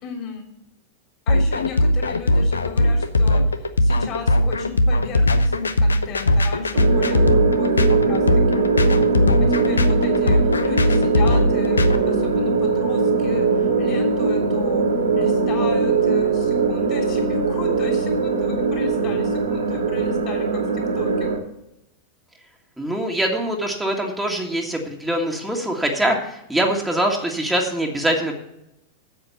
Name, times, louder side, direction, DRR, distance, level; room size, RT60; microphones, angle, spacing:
voice 1, 0.0-0.5 1.3-9.1 9.4-14.9 15.2-21.3, left 6 dB, 35° left, 2 dB, 3.4 m, -35 dB
sound 1, 1.3-12.0, left 1 dB, 75° left, 0.7 m, -18 dB
sound 2, 6.7-21.4, right 4 dB, 70° right, 2.6 m, -21 dB
voice 2, 22.8-28.3, right 1 dB, 5° right, 0 dB, 1.8 m, -23 dB
9.1 x 7.8 x 7.0 m, 0.81 s
figure-of-eight pair, 90°, 0 cm